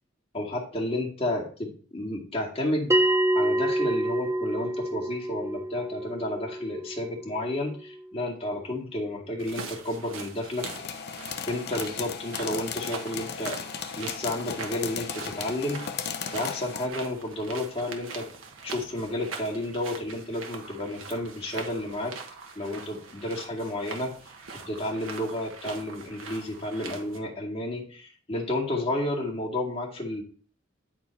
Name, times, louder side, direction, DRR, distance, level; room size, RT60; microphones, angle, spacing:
voice 1, 0.3-2.9 3.4-10.7 11.4-13.6 14.0-15.8 16.3-18.3 18.6-22.2 22.6-24.1 24.7-30.2, left 1 dB, 30° left, -2 dB, 2.2 m, -31 dB
Bell, 2.9-8.0, right 1 dB, 15° right, 0.6 m, -27 dB
sound 1, 9.4-27.2, right 4 dB, 75° right, 1.3 m, -42 dB
sound 2, 10.6-16.9, left 7 dB, 55° left, 0.7 m, -36 dB
10.0 x 4.4 x 4.5 m, 0.43 s
head